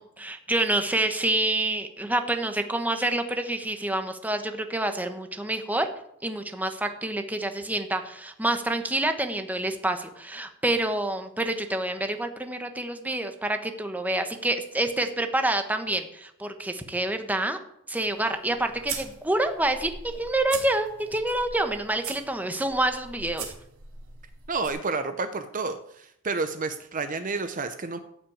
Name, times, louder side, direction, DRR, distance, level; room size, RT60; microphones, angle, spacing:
voice 1, 0.0-5.9 6.2-17.6 17.9-23.5, right 1 dB, 10° right, 6 dB, 1.0 m, -27 dB
sound 1, 18.1-24.7, right 6 dB, 75° right, 2.8 m, -41 dB
voice 2, 24.5-28.0, right 4 dB, 40° right, 9 dB, 0.7 m, -30 dB
14.5 x 5.9 x 8.7 m, 0.77 s
head